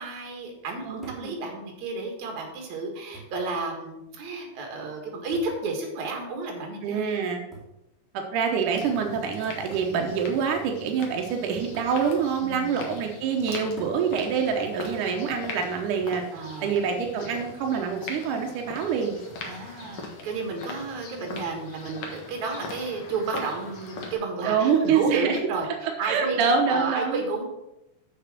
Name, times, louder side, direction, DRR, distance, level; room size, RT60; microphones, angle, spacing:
voice 1, 0.0-7.0 12.4-12.8 16.3-16.7 19.4-27.4, right 3 dB, 55° right, 2 dB, 2.5 m, -32 dB
voice 2, 0.9-1.4 6.8-7.4 8.1-16.2 16.6-19.2 24.4-25.4 26.1-27.2, right 6 dB, 85° right, 2 dB, 1.8 m, -26 dB
sound 1, 1.0-1.4 2.4-2.5 3.1-3.5 5.3-5.7 7.5-7.8 8.9-9.0 9.7-10.0 11.7-12.0 13.8-14.1 15.6-16.0, right 3 dB, ahead, 0.7 m, -45 dB
sound 2, 8.7-24.1, left 3 dB, 75° left, 1.3 m, -40 dB
7.3 x 6.7 x 6.0 m, 0.89 s
omnidirectional pair, 5.0 m